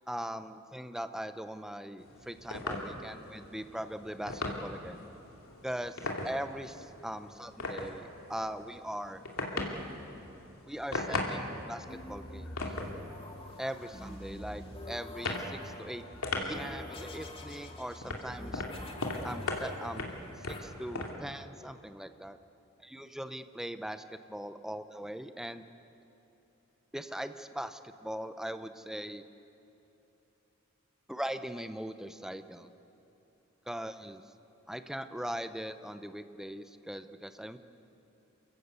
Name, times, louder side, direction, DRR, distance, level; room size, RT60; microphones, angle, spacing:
voice 1, 0.1-5.0 5.6-9.2 10.7-12.8 13.6-16.0 16.3-18.6 19.2-20.1 20.4-22.4 22.8-25.6 26.9-29.2 31.1-32.7 33.7-34.2 34.7-37.6, equal, ahead, 9 dB, 0.8 m, -40 dB
sound 1, 2.0-21.1, left 2 dB, 85° left, 2.7 m, -40 dB
sound 2, 11.9-20.6, left 1 dB, 25° left, 2.1 m, -46 dB
29.0 x 15.0 x 8.2 m, 3.0 s
head